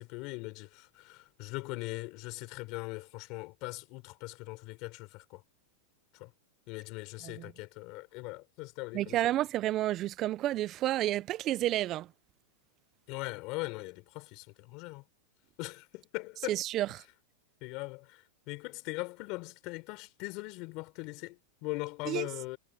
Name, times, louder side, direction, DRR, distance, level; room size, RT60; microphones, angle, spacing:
voice 1, 0.0-5.4 6.1-6.3 6.7-9.2 13.1-15.0 15.6-16.6 17.6-22.6, left 24 dB, 45° left, 4.0 m, -40 dB
voice 2, 8.9-12.1 16.5-16.9 22.1-22.3, right 14 dB, 35° right, 0.5 m, -30 dB
supercardioid pair, 140°, 0 cm